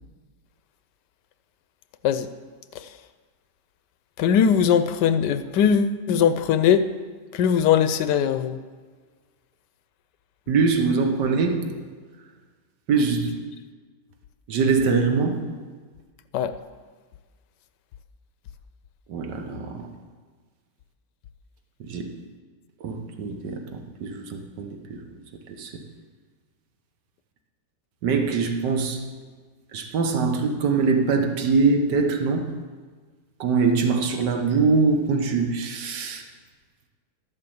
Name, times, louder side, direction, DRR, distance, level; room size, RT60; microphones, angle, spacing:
voice 1, 4.2-6.9 7.3-8.6 16.3-16.5, left 8 dB, 75° left, 11 dB, 1.2 m, -20 dB
voice 2, 10.5-11.7 12.9-13.4 14.5-15.4 19.1-19.8 21.8-22.1 22.8-25.0 25.6-25.7 28.0-29.0 29.7-32.5 33.4-36.2, right 4 dB, 70° right, 4 dB, 1.8 m, -23 dB
12.5 x 7.7 x 7.9 m, 1.5 s
omnidirectional pair, 2.0 m